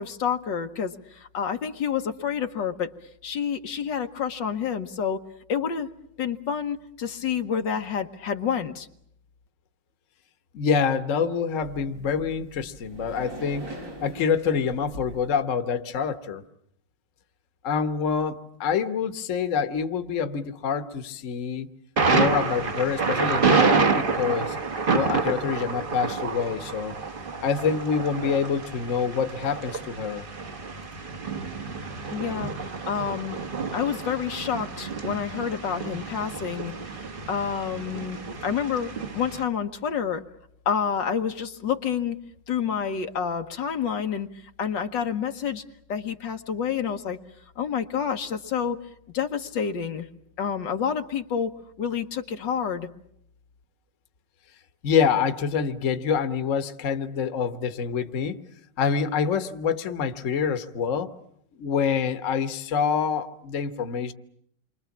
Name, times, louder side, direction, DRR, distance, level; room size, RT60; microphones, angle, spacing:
voice 1, 0.0-2.9 3.2-5.2 5.5-5.9 6.2-8.9 32.1-33.4 33.7-36.7 37.3-38.2 38.4-40.2 40.7-42.2 42.5-44.3 44.6-45.6 45.9-47.2 47.6-48.8 49.1-50.1 50.4-52.9, left 7 dB, 80° left, 6 dB, 1.9 m, -28 dB
voice 2, 10.5-13.7 14.0-16.4 17.6-21.7 22.1-24.6 24.9-26.9 27.4-30.2 54.8-58.4 58.8-61.1 61.6-64.1, left 6 dB, 45° left, 10 dB, 1.4 m, -26 dB
sound 1, 11.6-15.3, right 1 dB, 85° right, 7.2 m, -42 dB
Thunder, 22.0-39.4, right 4 dB, 35° right, 1.3 m, -28 dB
28.5 x 24.5 x 7.2 m, 0.71 s
omnidirectional pair, 2.0 m